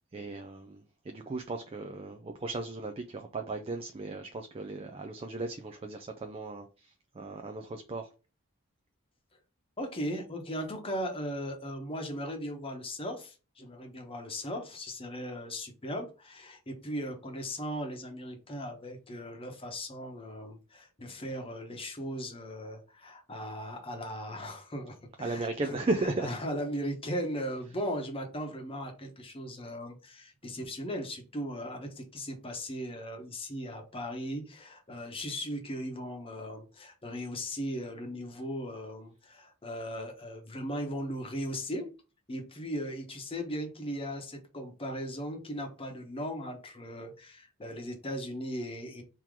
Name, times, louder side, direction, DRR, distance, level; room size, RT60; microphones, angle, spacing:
voice 1, 0.1-8.1 25.2-26.3, right 2 dB, 25° right, 0.4 m, -36 dB
voice 2, 9.8-25.8 26.2-41.9 42.3-49.0, equal, 25° left, 1.0 m, -38 dB
3.7 x 2.9 x 4.6 m
head